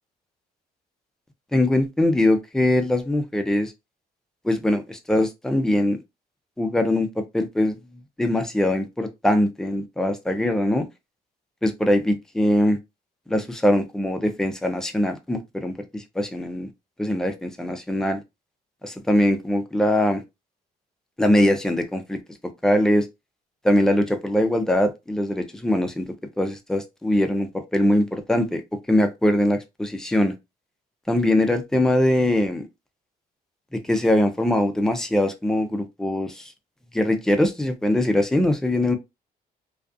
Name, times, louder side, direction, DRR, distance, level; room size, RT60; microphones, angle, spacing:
voice 1, 1.5-3.7 4.4-6.0 6.6-7.8 8.2-10.9 11.6-12.8 13.3-16.7 17.0-18.2 18.8-20.2 21.2-22.2 22.6-23.1 23.6-26.1 26.4-28.6 28.9-30.3 31.1-32.6 33.7-36.5 36.9-39.0, left 1 dB, 5° left, 0.4 m, -22 dB
2.3 x 2.3 x 2.5 m
cardioid pair, 115°, 16 cm